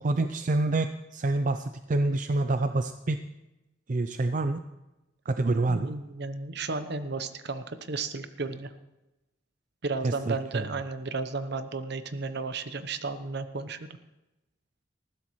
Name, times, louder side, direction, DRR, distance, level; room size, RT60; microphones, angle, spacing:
voice 1, 0.0-3.2 3.9-4.6 5.3-5.9 10.0-10.7, right 2 dB, 45° right, 9 dB, 0.5 m, -27 dB
voice 2, 5.7-8.7 9.8-13.9, right 3 dB, 60° right, 10 dB, 0.9 m, -33 dB
19.5 x 15.0 x 3.2 m, 0.99 s
head